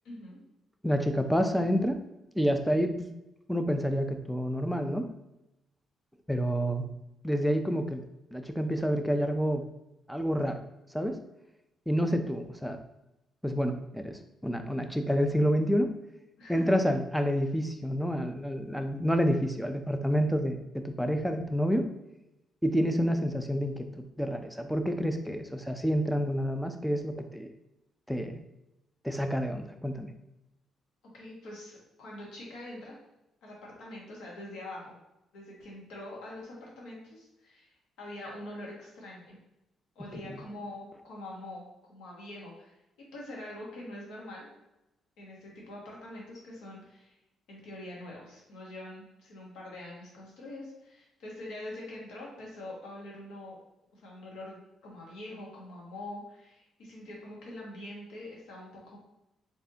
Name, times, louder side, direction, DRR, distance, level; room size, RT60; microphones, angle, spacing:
voice 1, 0.0-0.4 16.4-16.7 31.1-33.0 33.4-34.9 35.3-37.7 38.0-39.4 39.9-41.6 41.9-42.8 43.1-44.5 45.2-47.1 47.5-53.6 53.9-59.0, left 1 dB, 80° left, -3 dB, 1.4 m, -44 dB
voice 2, 0.8-2.0 2.3-3.1 3.5-5.1 6.3-6.9 7.2-8.0 8.3-9.7 10.1-10.6 10.9-11.2 11.9-12.8 13.4-15.9 16.5-21.9 22.6-27.5 28.1-28.4 29.0-30.1 40.1-40.4, equal, ahead, 6 dB, 0.4 m, -28 dB
3.9 x 3.4 x 2.8 m, 0.89 s
cardioid pair, 90°, 0 cm